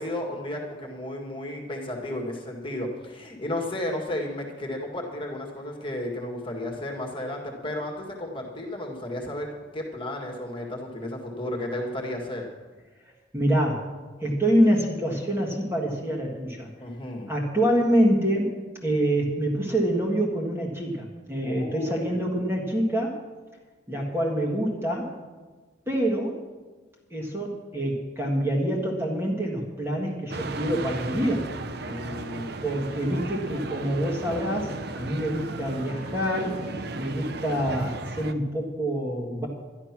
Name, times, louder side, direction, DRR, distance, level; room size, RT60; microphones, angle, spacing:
voice 1, 0.0-12.4 16.8-17.3 21.4-22.2 31.9-32.8, left 1 dB, 25° left, 0 dB, 1.8 m, -33 dB
voice 2, 13.0-13.9 14.2-16.7 17.3-18.6 18.8-23.2 23.9-25.1 25.9-26.4 27.1-31.5 32.6-36.6 37.0-39.5, equal, 10° right, -2 dB, 1.7 m, -26 dB
sound 1, 30.3-38.3, right 3 dB, 55° right, 0.7 m, -35 dB
12.0 x 11.5 x 6.0 m, 1.3 s
head